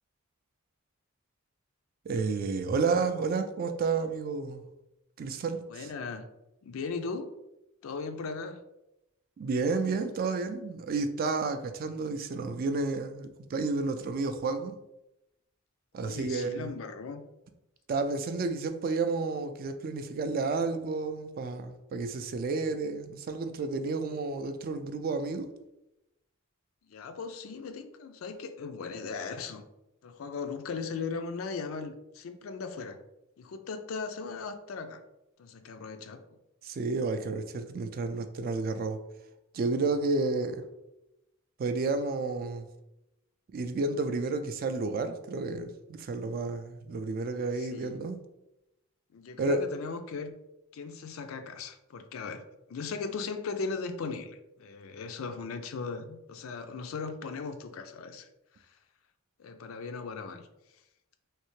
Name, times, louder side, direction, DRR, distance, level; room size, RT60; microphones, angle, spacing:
voice 1, 2.1-4.7 5.2-5.9 9.4-14.7 15.9-16.7 17.9-25.5 36.6-39.0 39.5-40.6 41.6-42.7 43.5-48.2 49.4-49.6, right 3 dB, 45° right, 8 dB, 0.3 m, -31 dB
voice 2, 5.7-6.2 6.6-7.3 7.8-8.6 16.0-17.2 26.8-29.6 30.0-33.0 33.4-35.0 35.4-36.2 47.6-47.9 49.1-50.3 50.7-52.4 52.7-58.3 58.6-58.7 59.4-60.5, left 4 dB, 80° left, 8 dB, 0.4 m, -38 dB
3.2 x 2.8 x 3.1 m, 0.89 s
head